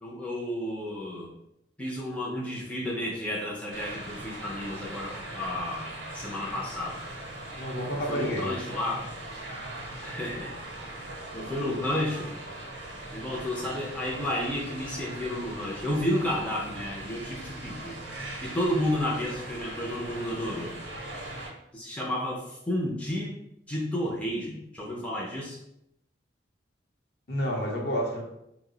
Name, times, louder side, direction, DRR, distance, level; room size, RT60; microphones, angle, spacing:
voice 1, 0.0-1.3 1.8-5.9 6.1-7.0 8.1-9.1 10.0-10.7 11.3-12.3 13.1-18.0 18.4-20.8 21.7-23.3 23.7-25.6, left 1 dB, 5° left, -4 dB, 0.4 m, -31 dB
sound 1, 3.7-21.5, right 1 dB, 65° right, 0.6 m, -40 dB
voice 2, 7.6-8.5 27.3-28.2, equal, 55° left, -1 dB, 0.7 m, -29 dB
2.7 x 2.0 x 3.7 m, 0.81 s
head